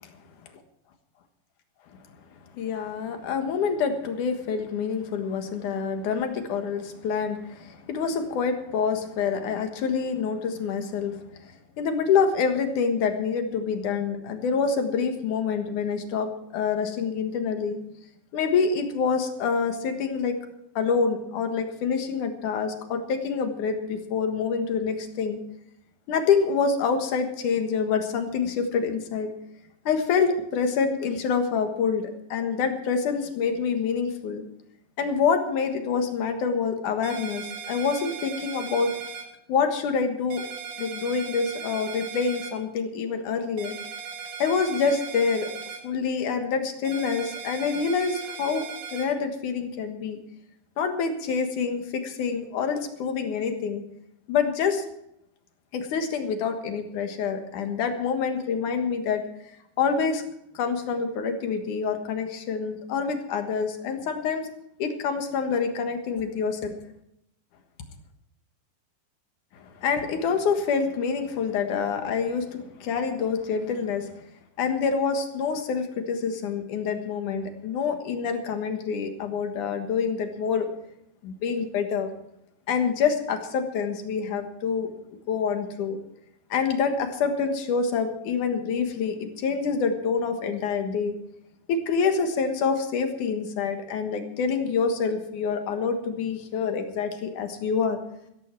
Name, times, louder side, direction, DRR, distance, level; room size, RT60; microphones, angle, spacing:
voice 1, 2.5-17.8 18.3-20.4 20.8-25.4 26.1-29.3 29.9-32.0 32.3-34.4 35.0-38.9 39.5-40.4 40.8-43.7 44.4-45.5 45.8-48.6 48.9-50.2 50.8-53.8 54.3-54.8 55.7-59.2 59.8-60.2 60.5-64.5 64.8-66.7 69.8-74.1 74.6-80.7 81.2-82.1 82.7-84.9 85.3-86.0 86.5-91.2 91.7-98.0, left 5 dB, 65° left, 6 dB, 2.8 m, -26 dB
sound 1, 37.0-39.2 40.3-42.5 43.6-45.8 46.8-49.1, right 6 dB, 85° right, 5.1 m, -38 dB
15.0 x 14.5 x 4.5 m, 0.77 s
omnidirectional pair, 4.2 m